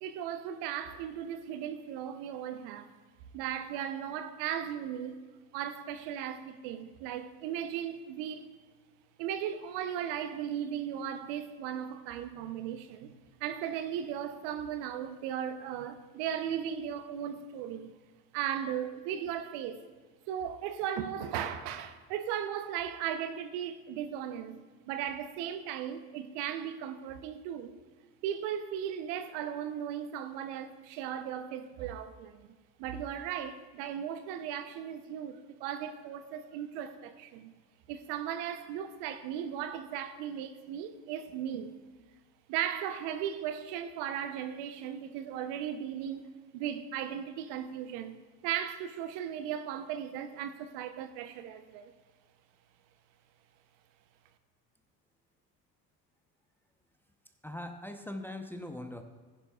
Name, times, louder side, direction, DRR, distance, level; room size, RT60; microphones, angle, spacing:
voice 1, 0.0-2.9 3.3-5.1 5.5-8.5 9.2-13.1 13.4-17.9 18.3-19.8 20.3-27.7 28.2-32.5 32.8-37.5 37.9-41.7 42.5-48.2 48.4-51.9, right 9 dB, 60° right, 0.8 m, -37 dB
voice 2, 57.4-59.0, left 1 dB, 5° left, 0.8 m, -41 dB
15.5 x 10.5 x 2.4 m
hypercardioid pair, 65°, 48 cm